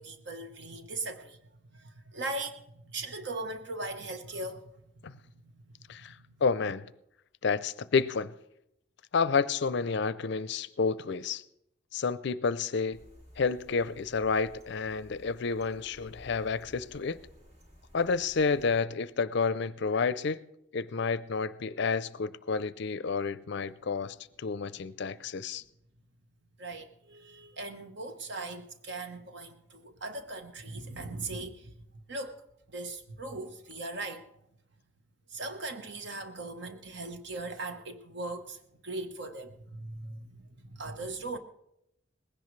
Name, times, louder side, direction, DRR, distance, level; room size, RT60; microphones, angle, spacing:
voice 1, 0.0-1.4 1.7-4.7 5.0-5.6 6.1-6.3 26.6-32.4 32.7-34.2 35.3-38.6 38.8-41.4, right 2 dB, 60° right, 1.1 m, -39 dB
voice 2, 5.9-6.8 7.4-8.3 9.1-11.4 11.9-13.0 13.4-17.2 17.9-20.4 20.7-25.6, left 5 dB, 55° left, 0.5 m, -30 dB
sound 1, 12.9-18.7, equal, 35° right, 2.3 m, -56 dB
19.5 x 16.5 x 3.2 m
head